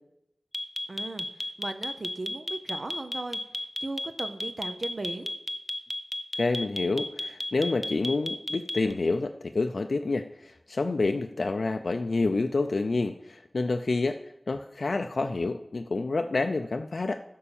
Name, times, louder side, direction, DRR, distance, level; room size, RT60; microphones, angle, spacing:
sound 1, 0.5-8.9, left 1 dB, 25° left, 0.6 m, -32 dB
voice 1, 0.9-3.4 3.8-5.3, right 2 dB, 55° right, 9 dB, 0.7 m, -37 dB
voice 2, 6.4-14.2 14.5-17.2, left 3 dB, 75° left, 6 dB, 0.4 m, -28 dB
11.0 x 5.5 x 7.1 m, 0.86 s
wide cardioid pair, 60°, 0 cm